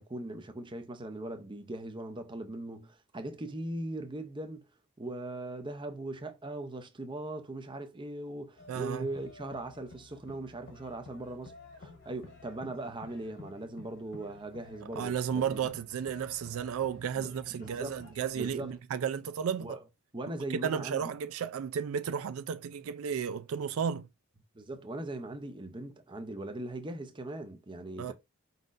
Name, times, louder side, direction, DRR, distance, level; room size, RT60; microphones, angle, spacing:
voice 1, 0.0-4.6 5.0-11.5 11.8-15.7 17.2-18.0 18.3-18.8 19.6-19.8 20.1-21.1 24.5-28.1, right 2 dB, 20° right, 0.7 m, -40 dB
sound 1, 8.6-18.8, left 3 dB, 55° left, 1.7 m, -53 dB
voice 2, 8.7-9.1 15.0-19.8 20.5-24.1 28.0-28.1, right 7 dB, 65° right, 0.3 m, -33 dB
5.1 x 4.0 x 2.5 m
head